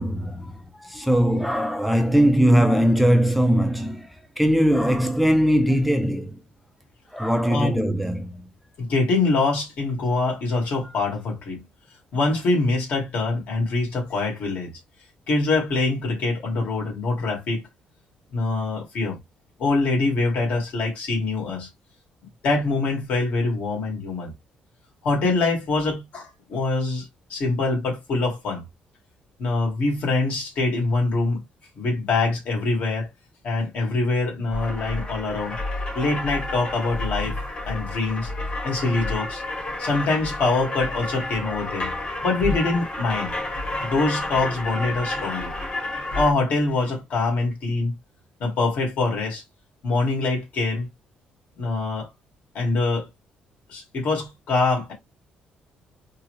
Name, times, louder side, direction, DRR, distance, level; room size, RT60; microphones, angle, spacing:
voice 1, 0.0-6.4 7.1-8.5, equal, ahead, 0.4 m, -20 dB
voice 2, 7.5-7.8 8.8-11.6 12.1-14.7 15.3-17.6 18.3-19.2 19.6-21.7 22.4-24.3 25.0-28.6 29.4-31.4 31.8-33.1 33.4-35.6 36.0-37.4 37.6-38.3 38.6-39.4 39.8-41.9 42.2-43.3 43.8-45.5 46.1-47.9 48.4-49.4 49.8-50.9 51.6-52.1 52.5-53.1 53.7-54.9, left 3 dB, 65° left, 1.8 m, -24 dB
sound 1, 34.5-46.3, left 2 dB, 40° left, 1.5 m, -30 dB
3.8 x 2.0 x 3.1 m
cardioid pair, 140°, 3 cm